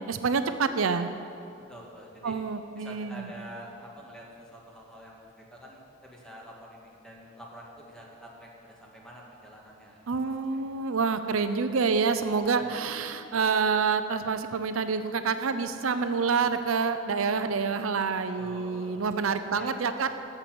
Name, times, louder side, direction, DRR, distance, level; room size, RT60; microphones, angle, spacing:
voice 1, 0.1-1.1 2.2-3.3 10.1-20.1, right 5 dB, 90° right, 10 dB, 0.6 m, -27 dB
voice 2, 1.7-2.4 2.8-10.9 12.5-12.9 18.3-19.0 19.5-19.9, equal, 5° left, -3 dB, 1.7 m, -47 dB
14.0 x 6.7 x 6.1 m, 2.7 s
head